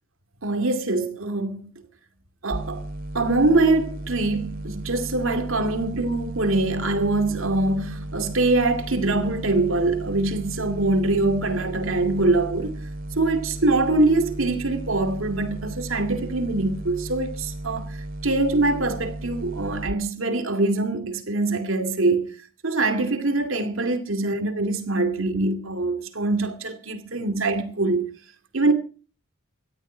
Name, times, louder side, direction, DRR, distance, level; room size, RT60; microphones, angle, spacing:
voice 1, 0.4-1.7 2.4-2.8 3.1-12.8 13.2-18.0 18.2-28.1 28.5-28.7, right 2 dB, 65° right, 2.4 m, -23 dB
sound 1, 2.5-19.9, right 1 dB, 45° right, 2.4 m, -35 dB
18.5 x 13.0 x 4.5 m
head